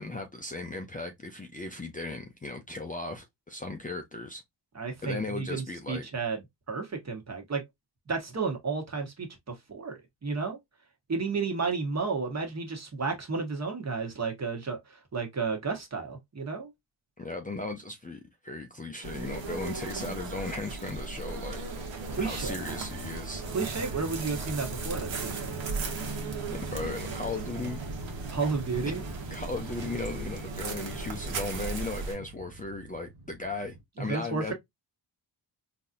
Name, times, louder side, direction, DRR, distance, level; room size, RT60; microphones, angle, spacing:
voice 1, 0.0-4.4 5.0-6.1 17.2-21.6 22.2-23.4 26.5-27.8 29.3-34.5, left 3 dB, 20° left, 0.5 m, -37 dB
voice 2, 4.7-6.4 6.7-7.6 8.1-10.6 11.1-16.7 22.1-22.6 23.5-25.5 28.3-29.1 34.0-34.5, right 4 dB, 35° right, 1.3 m, -32 dB
sound 1, 19.0-32.1, right 3 dB, 75° right, 1.3 m, -37 dB
Motorcycle, 21.6-33.8, right 3 dB, 60° right, 1.8 m, -43 dB
3.9 x 2.8 x 2.4 m
cardioid pair, 95°, 45 cm